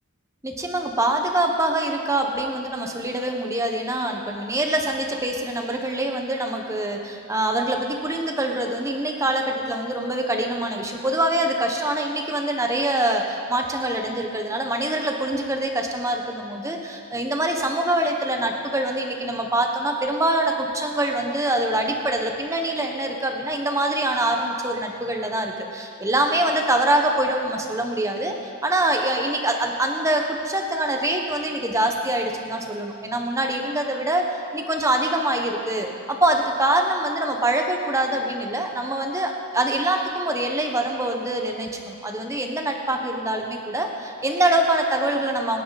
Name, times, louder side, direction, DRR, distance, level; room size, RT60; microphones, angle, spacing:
voice 1, 0.4-28.3 28.6-45.6, right 1 dB, 15° right, 2 dB, 1.2 m, -24 dB
25.5 x 10.0 x 4.2 m, 2.5 s
head